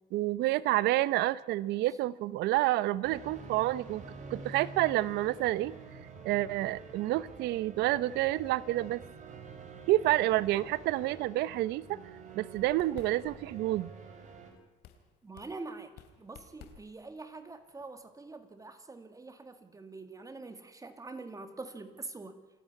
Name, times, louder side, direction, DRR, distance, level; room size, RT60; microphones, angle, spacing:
voice 1, 0.1-4.0 4.3-5.7 6.2-9.0 9.9-12.0 12.3-13.9, right 16 dB, 85° right, 19 dB, 0.8 m, -29 dB
sound 1, 3.0-14.5, right 4 dB, 45° right, 5.5 m, -48 dB
sound 2, 11.9-18.6, left 9 dB, 85° left, 2.7 m, -57 dB
voice 2, 15.2-15.9 16.2-22.4, right 3 dB, 20° right, 9 dB, 2.0 m, -45 dB
27.5 x 12.0 x 9.6 m, 1.3 s
cardioid pair, 110°, 17 cm